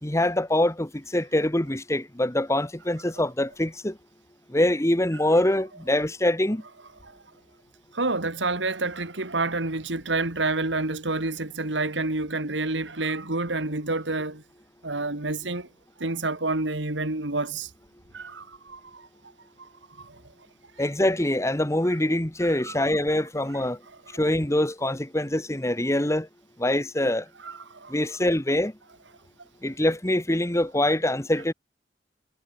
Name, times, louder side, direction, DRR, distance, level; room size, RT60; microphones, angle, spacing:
voice 1, 0.0-4.0 4.5-6.6 20.8-23.8 24.1-26.3 26.6-27.2 27.9-28.7 29.6-31.5, left 1 dB, 15° left, 1.5 m, -24 dB
voice 2, 7.9-14.4 14.8-15.7 16.0-17.7 18.1-19.1 19.6-19.7 20.0-20.2 22.4-22.8 24.1-24.2 27.4-27.9, right 3 dB, 80° right, 2.6 m, -29 dB
head